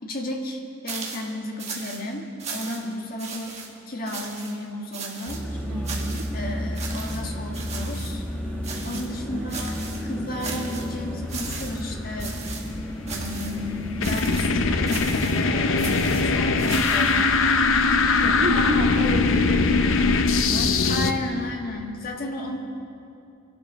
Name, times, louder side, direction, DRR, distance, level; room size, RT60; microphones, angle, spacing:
voice 1, 0.0-3.6 3.9-5.4 6.3-8.2 8.8-12.4 13.1-17.3 20.9-22.6, left 1 dB, 45° left, 1 dB, 1.6 m, -33 dB
sound 1, 0.9-1.3 1.6-2.0 2.4-2.9 3.2-3.7 4.1-4.5 4.9-5.4 5.8-6.3 6.8-7.2 7.5-8.1 8.6-9.2 9.5-10.0 10.4-10.9 11.3-11.9 12.2-12.7 13.1-13.6 14.0-14.5 14.9-15.4 15.8-17.2, right 4 dB, 30° right, 1.7 m, -37 dB
voice 2, 2.6-3.1 5.7-6.3 8.7-9.0 9.3-9.6 18.2-20.8, right 1 dB, 70° right, -3 dB, 2.5 m, -32 dB
sound 2, 5.3-20.0, equal, 10° left, 1.6 m, -33 dB
sound 3, 13.0-21.1, left 4 dB, 75° left, 0.7 m, -21 dB
24.5 x 12.0 x 3.6 m, 2.7 s
head